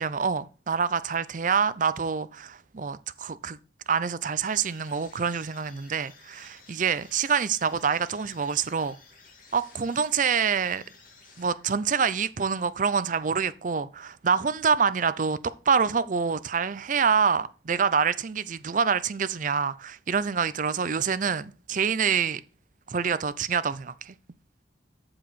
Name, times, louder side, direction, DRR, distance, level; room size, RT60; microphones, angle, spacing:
voice 1, 0.0-3.6 3.9-9.0 9.5-10.8 11.4-15.4 15.7-22.4 22.9-24.2, right 6 dB, 45° right, 0.5 m, -26 dB
sound 1, 4.4-11.9, left 4 dB, 50° left, 2.2 m, -54 dB
14.0 x 4.8 x 4.1 m
head